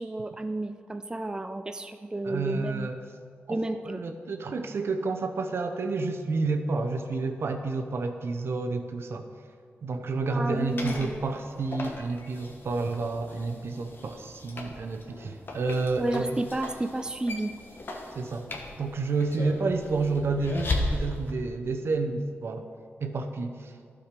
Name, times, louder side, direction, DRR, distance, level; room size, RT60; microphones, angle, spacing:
voice 1, 0.0-2.9 3.5-4.0 10.3-11.2 16.0-17.5, right 2 dB, 15° right, 8 dB, 0.4 m, -31 dB
voice 2, 2.2-3.0 3.5-3.6 3.8-9.2 9.8-16.4 18.1-18.4 18.8-22.7 23.0-23.7, right 3 dB, 65° right, 6 dB, 0.7 m, -30 dB
sound 1, 10.6-21.3, left 2 dB, 50° left, 1.3 m, -37 dB
12.0 x 4.9 x 5.1 m, 2.2 s
cardioid pair, 65°, 5 cm